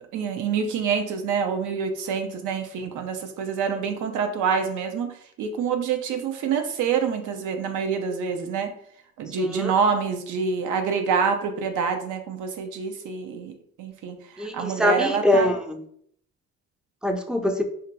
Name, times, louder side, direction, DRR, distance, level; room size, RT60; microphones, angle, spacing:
voice 1, 0.0-8.8 9.2-15.5, right 6 dB, 85° right, 6 dB, 0.6 m, -27 dB
voice 2, 9.4-9.7 14.4-15.8 17.0-17.6, left 1 dB, 5° right, 5 dB, 0.3 m, -23 dB
2.6 x 2.2 x 3.9 m, 0.66 s
cardioid pair, 90°, 30 cm